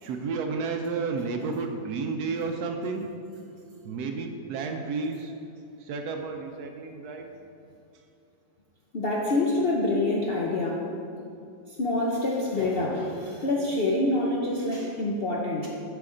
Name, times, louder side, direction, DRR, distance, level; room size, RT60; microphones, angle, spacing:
voice 1, 0.0-3.1 3.8-5.3 5.9-7.3, right 4 dB, 70° right, 4 dB, 1.0 m, -31 dB
voice 2, 8.9-10.8 11.8-15.7, left 2 dB, 55° left, -3 dB, 0.6 m, -26 dB
9.2 x 5.9 x 3.8 m, 2.6 s
omnidirectional pair, 1.9 m